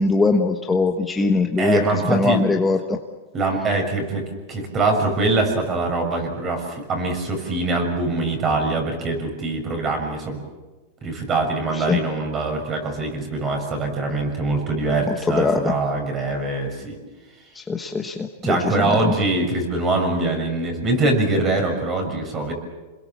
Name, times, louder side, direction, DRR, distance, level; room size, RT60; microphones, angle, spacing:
voice 1, 0.0-3.0 11.7-12.0 15.1-15.7 17.5-19.1, left 3 dB, 10° left, 3 dB, 1.3 m, -21 dB
voice 2, 1.6-2.4 3.3-4.2 4.5-10.4 11.0-17.0 18.4-22.5, right 2 dB, 25° right, 3 dB, 6.5 m, -23 dB
28.0 x 22.0 x 7.4 m, 1.2 s
supercardioid pair, 145°, 0 cm